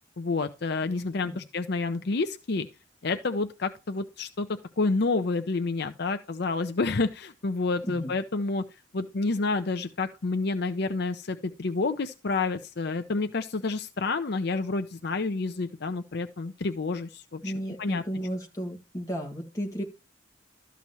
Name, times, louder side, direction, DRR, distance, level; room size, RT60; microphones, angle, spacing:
voice 1, 0.2-2.7 3.0-8.6 8.9-17.5 17.8-18.0, left 3 dB, 60° left, 0.6 m, -29 dB
voice 2, 17.4-19.8, equal, 20° left, 2.0 m, -34 dB
13.0 x 7.0 x 3.0 m
head